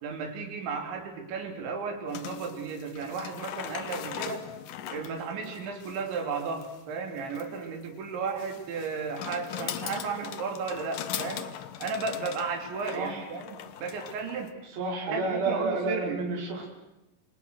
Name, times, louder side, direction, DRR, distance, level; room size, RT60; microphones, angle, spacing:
voice 1, 0.0-4.5 4.9-11.5 11.8-14.5 15.1-16.2, right 5 dB, 65° right, 5 dB, 5.2 m, -34 dB
sound 1, 2.1-14.5, left 10 dB, 85° left, 1.9 m, -40 dB
voice 2, 12.9-13.3 14.7-16.7, right 3 dB, 50° right, 0 dB, 6.6 m, -30 dB
28.0 x 26.0 x 6.3 m, 0.93 s
omnidirectional pair, 5.8 m